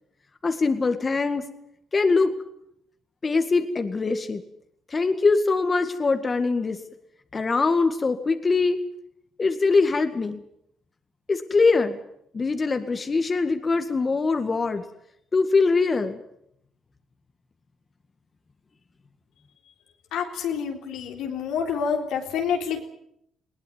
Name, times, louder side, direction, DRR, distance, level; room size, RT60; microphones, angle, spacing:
voice 1, 0.4-1.4 1.9-2.3 3.2-4.4 4.9-6.8 7.3-8.8 9.4-10.4 11.3-12.0 12.3-14.8 15.3-16.2, left 4 dB, 35° left, 8 dB, 1.9 m, -22 dB
voice 2, 20.1-22.8, left 7 dB, 85° left, 3 dB, 3.7 m, -28 dB
20.5 x 18.5 x 9.3 m, 0.75 s
cardioid pair, 90°, 0 cm